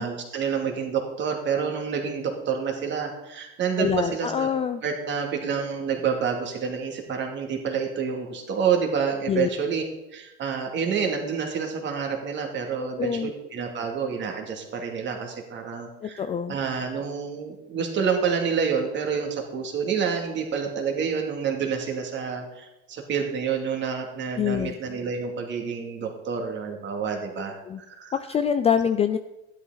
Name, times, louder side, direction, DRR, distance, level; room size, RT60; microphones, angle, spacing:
voice 1, 0.0-4.5 4.8-9.8 10.1-16.2 16.5-27.6 27.9-28.1, right 6 dB, 35° right, 2 dB, 2.5 m, -28 dB
voice 2, 3.8-4.8 9.3-9.5 12.8-13.3 16.0-16.5 24.4-24.7 27.7-27.8 28.1-29.2, left 8 dB, 20° left, 9 dB, 0.4 m, -25 dB
13.0 x 12.0 x 4.0 m, 0.97 s
cardioid pair, 140°, 31 cm